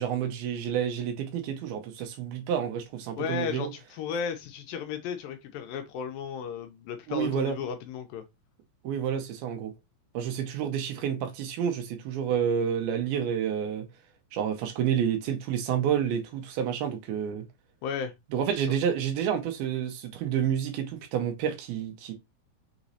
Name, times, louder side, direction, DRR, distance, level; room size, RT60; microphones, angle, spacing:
voice 1, 0.0-3.7 7.1-7.6 8.8-9.7 10.1-13.9 14.3-17.5 18.3-22.1, right 8 dB, 85° right, 2.6 m, -29 dB
voice 2, 3.2-8.2 17.8-18.1, left 7 dB, 80° left, 2.2 m, -34 dB
6.1 x 3.0 x 2.7 m
omnidirectional pair, 4.4 m